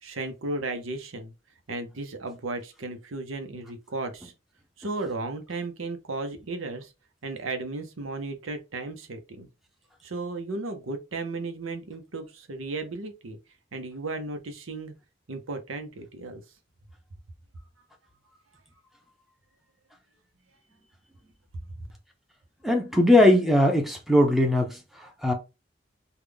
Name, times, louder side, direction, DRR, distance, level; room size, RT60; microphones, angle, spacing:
voice 1, 0.0-1.3 1.7-4.3 4.8-6.9 7.2-9.5 10.0-13.4 13.7-14.9 15.3-16.4, right 3 dB, 85° right, 0.8 m, -35 dB
voice 2, 22.6-25.3, left 1 dB, ahead, 0.7 m, -20 dB
3.6 x 2.4 x 3.4 m
head